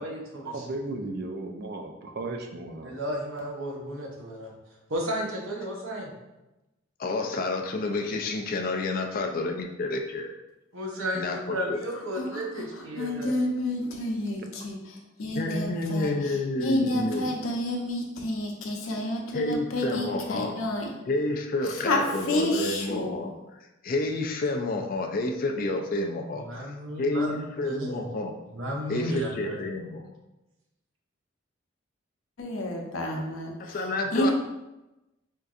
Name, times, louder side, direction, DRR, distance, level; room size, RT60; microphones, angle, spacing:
voice 1, 0.0-0.6 2.8-4.5 4.9-6.1 10.7-13.3 26.4-28.0 28.5-29.6, equal, 80° right, -2 dB, 0.8 m, -33 dB
voice 2, 0.5-2.9 20.3-20.4, right 2 dB, 50° right, 4 dB, 0.4 m, -35 dB
voice 3, 7.0-10.3 11.1-11.8 15.3-17.2 19.3-20.6 21.1-23.3 23.8-26.7 27.0-28.3 28.9-30.1 33.6-34.3, left 2 dB, 45° left, 3 dB, 0.3 m, -29 dB
voice 4, 12.1-12.6 13.0-16.3 16.6-20.9 21.8-22.0 22.3-23.2 32.4-33.8 34.1-34.3, left 1 dB, 90° left, 1 dB, 0.6 m, -29 dB
4.4 x 2.6 x 2.4 m, 0.99 s
head